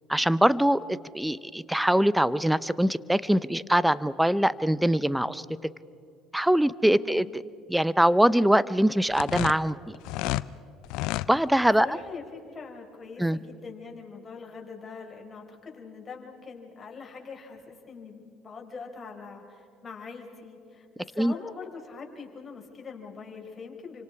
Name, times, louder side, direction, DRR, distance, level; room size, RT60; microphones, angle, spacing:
voice 1, 0.1-5.5 6.3-7.4 7.7-10.0 11.3-11.9 13.2-13.4 21.2-21.3, right 1 dB, 5° right, 18 dB, 0.8 m, -23 dB
voice 2, 6.9-7.3 11.8-24.0, left 5 dB, 35° left, 1 dB, 5.0 m, -43 dB
sound 1, 9.1-10.5 10.8-11.3, left 18 dB, 70° left, 0.5 m, -30 dB
29.0 x 25.5 x 4.9 m, 2.7 s
hypercardioid pair, 65°, 0 cm